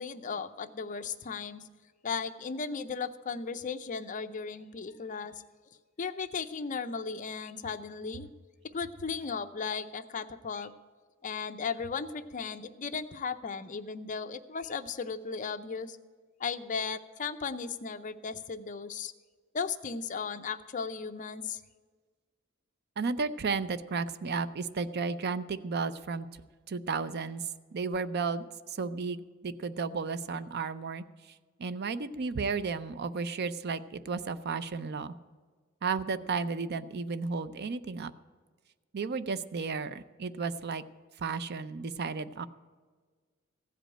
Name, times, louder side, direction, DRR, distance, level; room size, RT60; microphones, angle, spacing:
voice 1, 0.0-1.6 2.0-5.4 6.0-8.3 8.6-10.7 11.2-16.0 16.4-19.1 19.5-21.6, left 5 dB, 40° left, 9 dB, 0.6 m, -36 dB
voice 2, 23.0-26.3 26.7-31.0 31.6-35.1 35.8-38.1 38.9-40.8 41.2-42.5, right 4 dB, 50° right, 14 dB, 0.5 m, -33 dB
15.5 x 5.1 x 8.8 m, 1.5 s
head